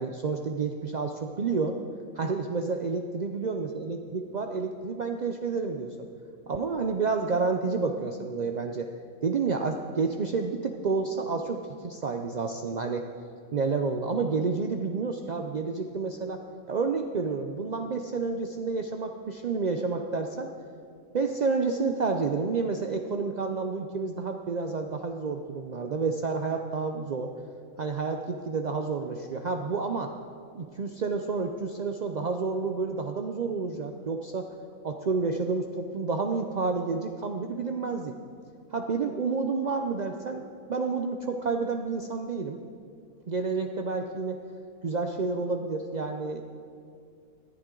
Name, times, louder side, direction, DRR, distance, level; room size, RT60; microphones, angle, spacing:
voice 1, 0.0-1.8 2.1-5.9 6.5-8.9 9.2-13.0 13.5-16.4 16.7-20.5 21.1-27.3 27.8-30.1 30.5-34.5 34.8-38.1 38.7-42.6 43.3-44.4 44.8-46.4, right 4 dB, 70° right, 4 dB, 0.4 m, -30 dB
18.5 x 11.0 x 3.8 m, 2.3 s
omnidirectional pair, 1.6 m